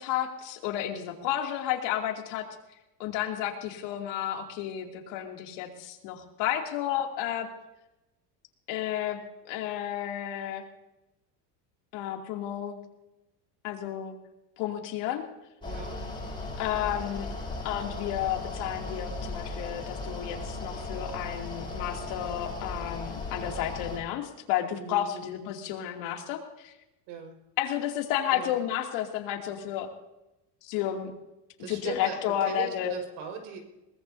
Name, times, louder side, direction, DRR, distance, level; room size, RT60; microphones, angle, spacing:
voice 1, 0.0-2.4 3.0-7.5 8.7-9.2 9.4-10.6 11.9-12.8 13.6-14.1 14.6-15.2 16.6-17.3 17.6-26.7 27.6-29.9 30.6-31.1 31.7-32.9, left 11 dB, 60° left, 1 dB, 2.9 m, -32 dB
Mechanical fan, 15.6-24.0, left 2 dB, 10° left, 4.8 m, -37 dB
voice 2, 15.6-16.4 24.7-25.3 27.1-27.4 28.3-28.6 31.6-33.6, right 5 dB, 70° right, 3 dB, 5.4 m, -39 dB
23.0 x 19.0 x 2.8 m, 0.93 s
cardioid pair, 155°, 48 cm